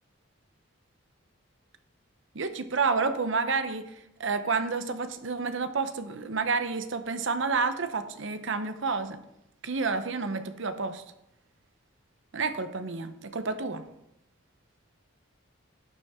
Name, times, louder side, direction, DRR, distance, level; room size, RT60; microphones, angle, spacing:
voice 1, 2.3-3.8 4.2-9.2 9.6-11.0 12.3-13.8, right 4 dB, 65° right, 10 dB, 0.8 m, -29 dB
11.5 x 6.9 x 3.7 m, 0.82 s
head